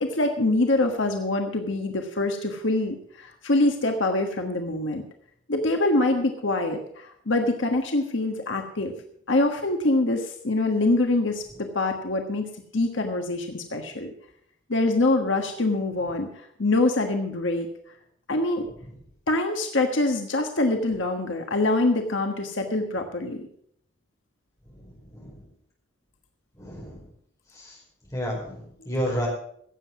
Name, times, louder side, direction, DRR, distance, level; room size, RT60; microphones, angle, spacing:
voice 1, 0.0-5.0 5.5-8.9 9.3-14.1 14.7-17.7 18.3-18.7 19.3-23.4, left 2 dB, 75° left, 4 dB, 1.4 m, -25 dB
voice 2, 24.7-25.4 26.6-27.1 27.5-27.8 28.1-29.3, equal, 15° left, -2 dB, 5.1 m, -31 dB
16.5 x 7.7 x 6.1 m, 0.66 s
head